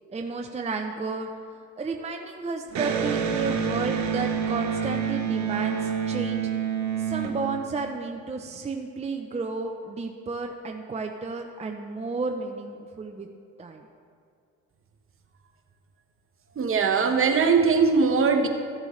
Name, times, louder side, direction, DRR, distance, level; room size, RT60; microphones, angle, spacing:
voice 1, 0.1-1.3 1.8-6.5 7.0-13.3 13.6-13.9, right 3 dB, 20° right, 3 dB, 0.6 m, -32 dB
Electric guitar, 2.7-8.2, right 7 dB, 70° right, 1.0 m, -28 dB
voice 2, 16.6-18.5, right 5 dB, 45° right, 5 dB, 1.0 m, -20 dB
14.5 x 7.4 x 3.2 m, 2.2 s
cardioid pair, 90°, 30 cm